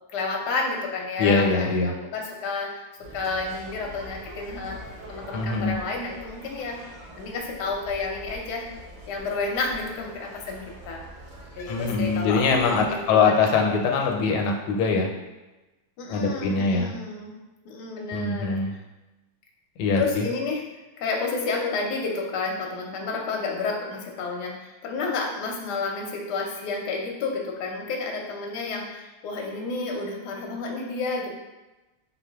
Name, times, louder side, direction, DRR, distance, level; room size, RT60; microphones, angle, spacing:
voice 1, 0.1-2.8 3.1-4.8 5.1-6.8 7.2-8.6 9.1-11.0 11.6-12.4 12.9-13.8 16.0-17.3 17.6-18.8 19.9-20.6 21.0-31.3, left 4 dB, 65° left, 0 dB, 1.1 m, -30 dB
voice 2, 1.2-1.9 5.3-5.8 11.7-15.1 16.1-16.9 18.1-18.7 19.8-20.2, left 4 dB, 85° left, 2 dB, 1.5 m, -23 dB
sound 1, 3.0-13.1, right 1 dB, 85° right, 1.7 m, -44 dB
4.7 x 2.4 x 3.4 m, 1.1 s
omnidirectional pair, 2.4 m